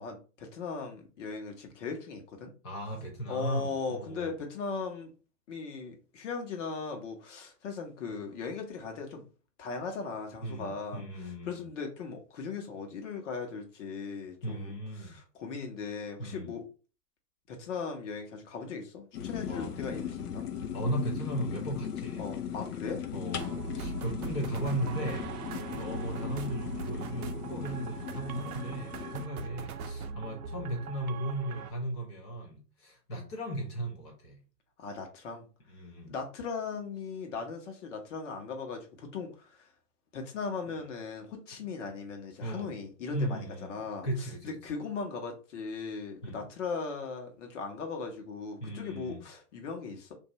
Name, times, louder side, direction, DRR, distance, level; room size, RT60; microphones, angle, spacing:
voice 1, 0.0-2.5 3.3-5.1 5.5-9.2 9.6-16.6 17.5-20.4 22.2-23.0 25.6-25.9 29.4-29.6 34.8-35.5 36.1-39.7 40.1-50.2, left 4 dB, 45° left, 1.1 m, -38 dB
voice 2, 2.6-4.3 10.4-11.7 14.4-15.2 16.2-16.5 19.4-19.8 20.7-22.3 23.1-25.3 25.8-34.4 35.7-36.1 40.7-40.8 42.4-42.7 43.1-44.6 46.2-46.4 48.6-49.2, right 1 dB, 20° left, 0.5 m, -36 dB
sound 1, 19.1-29.2, left 9 dB, 65° left, 0.7 m, -38 dB
sound 2, 23.4-31.7, right 6 dB, 65° right, 0.6 m, -41 dB
2.9 x 2.6 x 4.1 m
hypercardioid pair, 135°, 49 cm